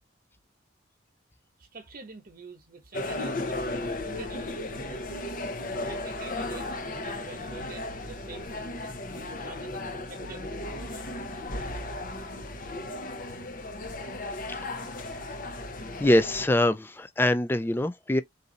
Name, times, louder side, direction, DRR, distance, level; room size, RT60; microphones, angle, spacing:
voice 1, 1.6-5.1 5.7-11.4, right 3 dB, 45° right, 1.0 m, -47 dB
sound 1, 2.9-16.5, left 2 dB, 45° left, 0.8 m, -35 dB
voice 2, 16.0-18.2, left 1 dB, 10° left, 0.3 m, -24 dB
4.1 x 2.7 x 3.9 m
head